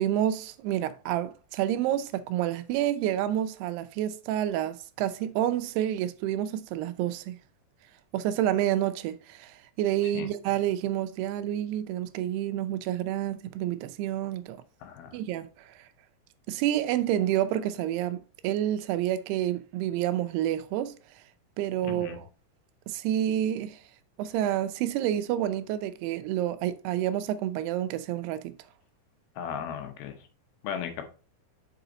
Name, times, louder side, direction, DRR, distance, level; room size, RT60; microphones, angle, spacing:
voice 1, 0.0-7.4 8.1-14.6 15.1-15.9 16.5-20.9 21.6-22.3 22.9-23.8 24.2-28.6, right 12 dB, 85° right, 2.6 m, -29 dB
voice 2, 14.8-15.2 21.9-22.2 29.4-30.2 30.6-31.1, left 8 dB, 75° left, 2.8 m, -36 dB
5.9 x 4.9 x 3.9 m
omnidirectional pair, 4.6 m